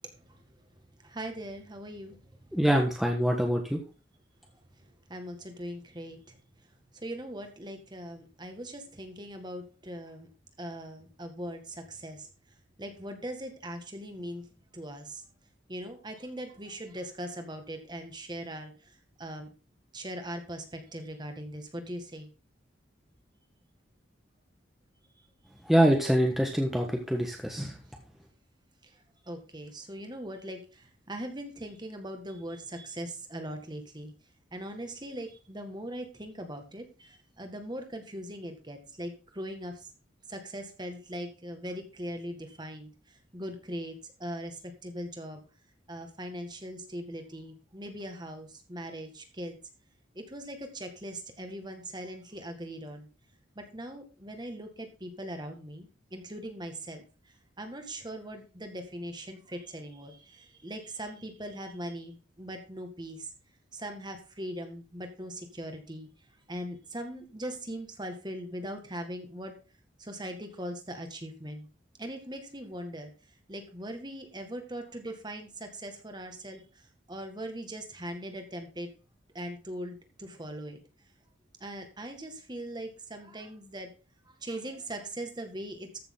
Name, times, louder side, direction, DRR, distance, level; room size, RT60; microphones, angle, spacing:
voice 1, 1.0-2.2 5.1-6.4 6.9-10.3 10.6-12.3 12.8-14.5 14.7-15.2 15.7-19.5 19.9-22.3 28.8-28.9 29.3-34.1 34.5-39.9 40.3-45.4 45.9-49.6 50.2-53.1 53.6-57.0 57.6-63.3 63.7-66.1 66.5-69.5 70.0-71.7 72.0-73.1 73.5-78.9 79.3-80.8 81.6-83.9 84.4-86.0, right 1 dB, 20° right, 5 dB, 1.8 m, -40 dB
voice 2, 2.5-3.8 25.6-27.7, equal, ahead, 1 dB, 1.3 m, -25 dB
14.0 x 6.7 x 3.7 m, 0.34 s
head